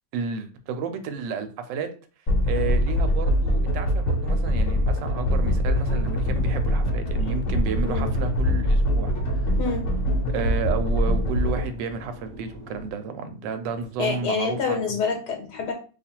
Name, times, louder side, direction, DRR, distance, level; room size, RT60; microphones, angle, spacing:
voice 1, 0.1-1.9 2.5-9.5 10.3-14.8, right 5 dB, 85° right, 8 dB, 1.3 m, -31 dB
sound 1, 2.3-11.6, equal, 50° left, 1.0 m, -23 dB
sound 2, 6.1-12.9, equal, ahead, 0.8 m, -42 dB
voice 2, 14.0-15.7, left 5 dB, 70° left, 2 dB, 1.3 m, -27 dB
2.8 x 2.4 x 4.3 m, 0.38 s
omnidirectional pair, 1.9 m